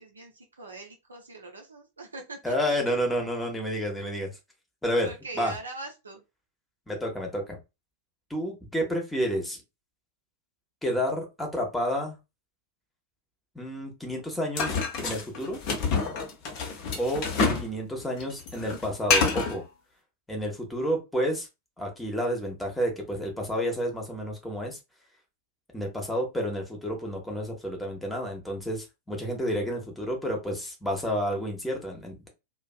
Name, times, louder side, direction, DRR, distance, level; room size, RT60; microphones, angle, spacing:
voice 1, 0.0-2.6 2.9-3.0 5.0-6.2, right 3 dB, 75° right, 1 dB, 0.5 m, -42 dB
voice 2, 2.4-4.3 4.8-5.1 5.4-5.5 6.9-7.6 8.3-9.6 10.8-12.2 13.5-15.6 16.9-17.3 17.6-19.6 20.3-21.5 21.8-24.8 25.7-32.3, equal, 5° left, 1 dB, 0.8 m, -30 dB
sound 1, 14.6-17.7 18.0-19.6, left 4 dB, 40° left, 0.7 m, -27 dB
2.5 x 2.1 x 2.3 m, 0.25 s
figure-of-eight pair, 90°, 0 cm